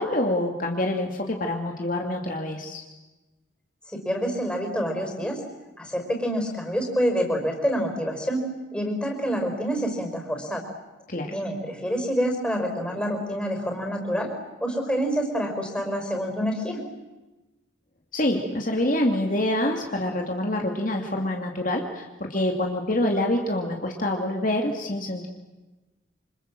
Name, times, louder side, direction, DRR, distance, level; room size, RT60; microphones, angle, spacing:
voice 1, 0.0-2.8 11.1-11.3 18.1-25.3, left 1 dB, 45° left, 2 dB, 2.6 m, -26 dB
voice 2, 3.9-5.4 5.8-8.5 8.7-10.7 11.3-14.3 14.6-16.8, equal, 5° left, 2 dB, 5.3 m, -27 dB
28.0 x 27.0 x 7.7 m, 1.1 s
head